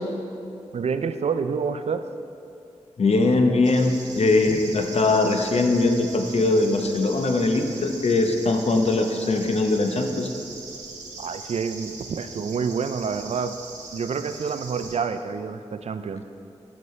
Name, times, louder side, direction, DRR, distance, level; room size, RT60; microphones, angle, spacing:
voice 1, 0.7-2.1 11.2-13.6 13.9-16.2, right 6 dB, 60° right, 10 dB, 0.4 m, -28 dB
voice 2, 3.0-10.3, left 2 dB, 60° left, 5 dB, 0.8 m, -21 dB
sound 1, 3.6-15.0, right 3 dB, 85° right, 1.2 m, -40 dB
10.5 x 7.7 x 3.2 m, 2.6 s
cardioid pair, 40°, 12 cm